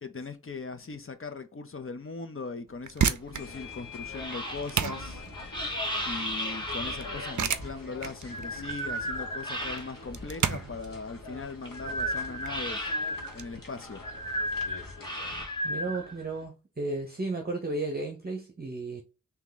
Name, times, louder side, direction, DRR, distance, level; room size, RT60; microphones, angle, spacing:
voice 1, 0.0-5.2 6.1-12.8 13.3-14.0, left 4 dB, 40° left, 0.7 m, -39 dB
sound 1, 2.7-13.4, right 8 dB, 65° right, 0.5 m, -34 dB
sound 2, 3.0-10.2 10.6-16.4, equal, 15° left, 1.3 m, -35 dB
sound 3, 3.3-15.5, left 3 dB, 80° left, 1.2 m, -44 dB
voice 2, 15.6-19.0, right 2 dB, 30° right, 0.8 m, -34 dB
3.5 x 2.9 x 3.9 m
wide cardioid pair, 70°, 33 cm